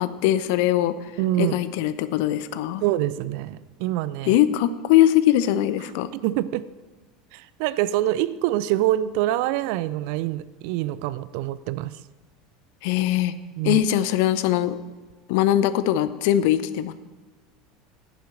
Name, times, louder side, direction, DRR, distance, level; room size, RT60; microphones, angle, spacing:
voice 1, 0.0-1.1 1.4-2.8 4.2-6.1 12.8-13.3 13.6-14.8 15.3-16.9, left 12 dB, 55° left, 14 dB, 0.6 m, -21 dB
voice 2, 1.2-1.6 2.8-4.4 6.1-6.6 7.3-11.9 13.6-13.8, right 14 dB, 55° right, 17 dB, 0.4 m, -25 dB
10.0 x 7.4 x 7.4 m, 1.3 s
figure-of-eight pair, 75°, 0 cm